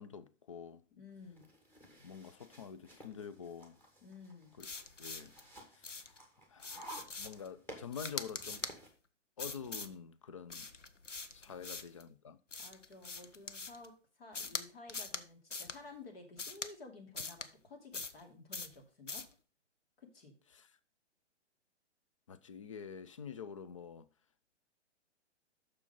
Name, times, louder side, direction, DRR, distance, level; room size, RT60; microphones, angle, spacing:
voice 1, 0.0-0.8 2.0-3.8 4.6-4.7 5.0-5.3 5.7-6.1 6.5-8.7 9.4-10.7 11.3-12.4 20.5-20.7 22.3-24.1, left 7 dB, 30° left, 0.4 m, -47 dB
voice 2, 0.9-1.5 4.0-4.5 11.4-11.8 12.6-19.3 20.0-20.3, left 3 dB, 55° left, 2.6 m, -53 dB
sound 1, 1.2-8.9, right 1 dB, 5° left, 1.3 m, -55 dB
sound 2, 4.6-5.4 5.8-6.2 6.6-7.5 7.9-8.8 9.4-9.9 10.5-12.0 12.5-13.9 14.3-14.6 14.9-15.2 15.5-15.8 16.4-16.7 17.2-17.5 17.9-18.2 18.5-18.8 19.1-19.3, left 4 dB, 90° left, 0.8 m, -43 dB
7.1 x 6.5 x 5.1 m
figure-of-eight pair, 125°, 36 cm